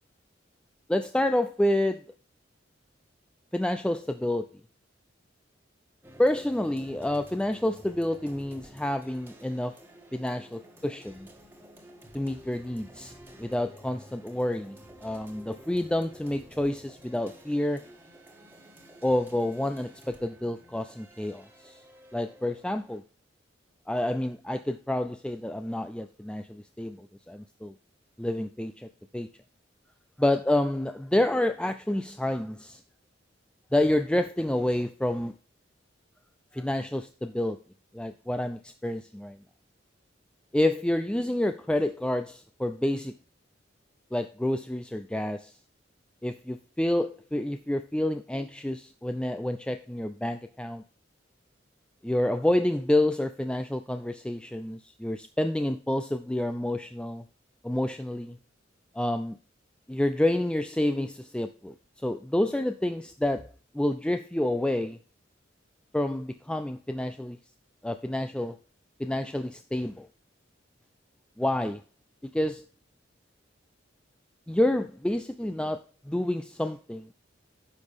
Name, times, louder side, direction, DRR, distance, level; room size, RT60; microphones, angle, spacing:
voice 1, 0.9-2.0 3.5-4.5 6.2-9.7 10.1-11.3 12.1-13.1 13.4-17.8 19.0-21.8 22.1-23.0 23.9-27.7 28.2-28.9 29.1-29.3 30.2-32.8 33.7-35.3 36.5-37.6 37.9-39.4 40.5-43.1 44.1-45.5 46.2-50.8 52.0-57.2 57.6-58.4 59.0-59.4 59.9-61.7 62.0-63.5 63.7-65.0 65.9-67.4 67.8-68.6 69.0-70.1 71.4-71.8 72.2-72.6 74.5-75.8 76.1-77.1, left 1 dB, 5° left, 9 dB, 0.3 m, -28 dB
sound 1, 6.0-23.0, right 1 dB, 10° right, 1.6 m, -51 dB
10.0 x 6.2 x 3.6 m, 0.38 s
head